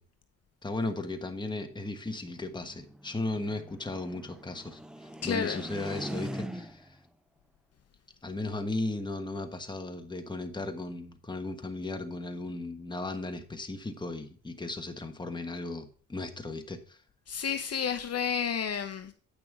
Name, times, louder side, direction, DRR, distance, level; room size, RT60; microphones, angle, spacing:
voice 1, 0.6-7.0 8.2-17.0, left 2 dB, 15° left, 1.3 m, -36 dB
sound 1, 1.7-7.0, equal, ahead, 0.5 m, -42 dB
voice 2, 5.2-5.6 17.3-19.1, left 7 dB, 50° left, 0.9 m, -31 dB
9.0 x 6.0 x 4.8 m
cardioid pair, 100°, 32 cm